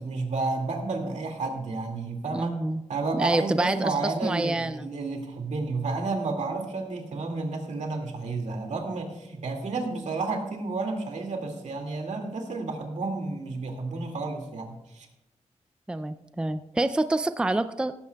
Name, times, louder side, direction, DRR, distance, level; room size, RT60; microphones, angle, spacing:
voice 1, 0.0-2.6 2.9-15.1, right 3 dB, 75° right, 3 dB, 2.2 m, -31 dB
voice 2, 2.3-2.8 3.1-4.9 15.9-17.9, right 2 dB, 10° right, 11 dB, 0.4 m, -27 dB
17.0 x 14.0 x 2.3 m, 0.95 s
wide cardioid pair, 135°, 12 cm